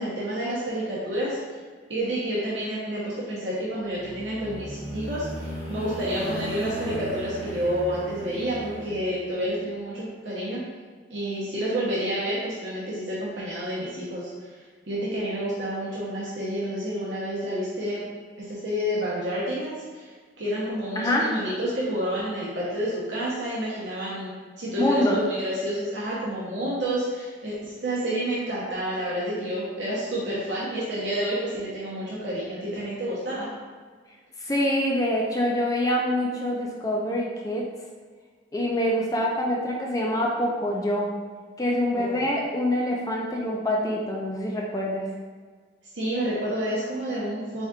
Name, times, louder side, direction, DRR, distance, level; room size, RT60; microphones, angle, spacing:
voice 1, 0.0-1.4 1.9-10.6 11.1-14.3 14.9-18.1 18.5-33.5 42.0-42.1 45.9-47.7, equal, 70° right, -8 dB, 0.9 m, -29 dB
sound 1, 3.7-9.5, equal, 35° right, 1.0 m, -37 dB
voice 2, 24.8-25.2 34.4-37.7 38.5-41.1 41.6-45.1, left 1 dB, 20° left, -2 dB, 0.4 m, -25 dB
4.1 x 3.5 x 2.4 m, 1.5 s
head